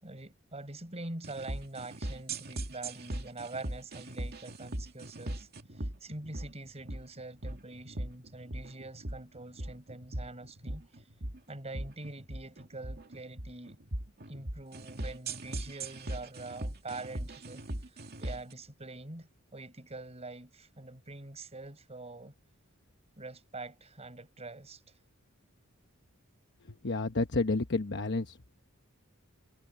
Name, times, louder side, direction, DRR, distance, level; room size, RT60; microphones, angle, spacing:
voice 1, 0.0-11.1 11.5-13.8 14.3-22.3 23.2-25.0, right 2 dB, 30° right, 6.1 m, -45 dB
sound 1, 1.2-18.5, right 1 dB, 50° right, 2.5 m, -40 dB
voice 2, 26.7-28.5, left 3 dB, 55° left, 1.0 m, -31 dB
head